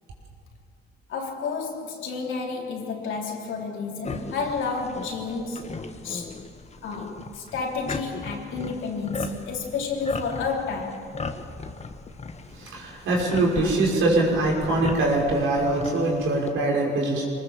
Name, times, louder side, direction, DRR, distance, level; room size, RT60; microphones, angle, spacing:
voice 1, 1.1-5.7 6.0-6.4 6.8-11.0, left 4 dB, 80° left, 3.4 m, -31 dB
sound 1, 4.0-16.5, left 4 dB, 35° left, 1.4 m, -37 dB
voice 2, 12.5-17.2, right 2 dB, 85° right, 5.7 m, -23 dB
23.0 x 20.0 x 7.4 m
cardioid pair, 90°, 20 cm